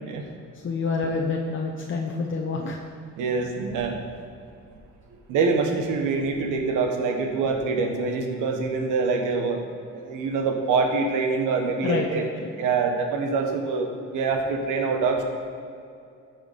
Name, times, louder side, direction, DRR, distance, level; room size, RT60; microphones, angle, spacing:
voice 1, 0.6-2.8 11.8-12.5, left 4 dB, 40° left, 0 dB, 0.9 m, -27 dB
voice 2, 3.2-4.0 5.3-9.6 9.9-12.3 12.6-15.2, right 4 dB, 90° right, 3 dB, 1.3 m, -25 dB
14.0 x 4.8 x 5.2 m, 2.4 s
cardioid pair, 90°, 30 cm